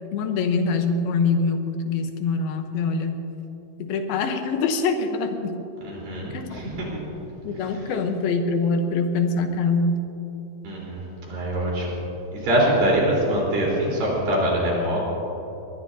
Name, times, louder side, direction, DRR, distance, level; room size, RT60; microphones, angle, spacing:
voice 1, 0.1-3.2 3.8-5.5 6.3-6.7 7.4-10.0, left 4 dB, 85° left, 6 dB, 2.9 m, -24 dB
voice 2, 5.8-7.0 10.6-12.0 12.3-15.0, right 1 dB, 70° right, -4 dB, 5.8 m, -24 dB
22.5 x 19.0 x 2.8 m, 3.0 s
omnidirectional pair, 4.2 m